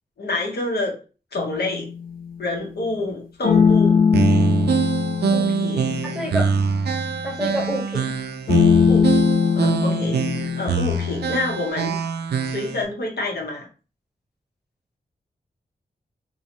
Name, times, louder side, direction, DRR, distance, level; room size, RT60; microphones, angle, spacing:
voice 1, 0.2-0.9 1.3-1.9 2.4-4.0 5.3-5.9 8.9-9.2 9.5-12.0 12.4-13.7, left 2 dB, 80° left, -1 dB, 1.0 m, -28 dB
sound 1, 1.4-2.4 3.4-7.5 8.5-11.7, left 6 dB, 60° left, 0.4 m, -21 dB
sound 2, 4.1-12.8, right 5 dB, 90° right, 0.4 m, -24 dB
voice 2, 6.0-6.5 7.2-8.1, equal, 5° right, 0 dB, 0.9 m, -27 dB
2.7 x 2.3 x 2.9 m, 0.35 s
wide cardioid pair, 75°, 17 cm